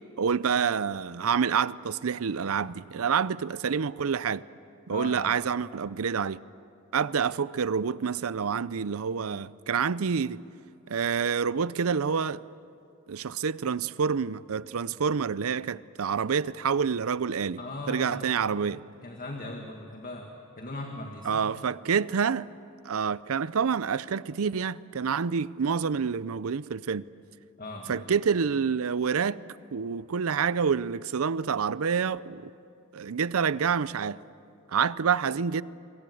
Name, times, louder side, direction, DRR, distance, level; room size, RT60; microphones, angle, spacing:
voice 1, 0.2-4.4 4.9-6.4 6.9-10.4 10.9-12.4 13.1-17.6 17.9-18.8 21.2-22.5 22.8-27.0 27.9-29.4 29.7-32.5 32.9-34.2 34.7-35.6, right 6 dB, 75° right, 0.6 m, -27 dB
voice 2, 4.9-5.4 17.6-21.4 27.6-28.1, left 2 dB, 40° left, 1.8 m, -39 dB
27.0 x 23.5 x 7.9 m
head